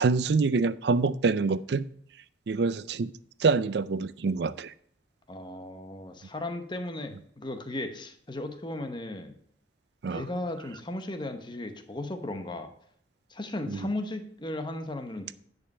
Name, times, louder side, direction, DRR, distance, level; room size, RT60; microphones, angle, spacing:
voice 1, 0.0-1.8 2.5-3.1 3.4-4.7 10.0-10.2 13.7-13.8, right 4 dB, 65° right, 16 dB, 0.4 m, -26 dB
voice 2, 5.3-9.3 10.0-12.7 13.3-15.3, left 1 dB, 25° left, 7 dB, 1.0 m, -36 dB
10.0 x 5.4 x 5.4 m, 0.64 s
head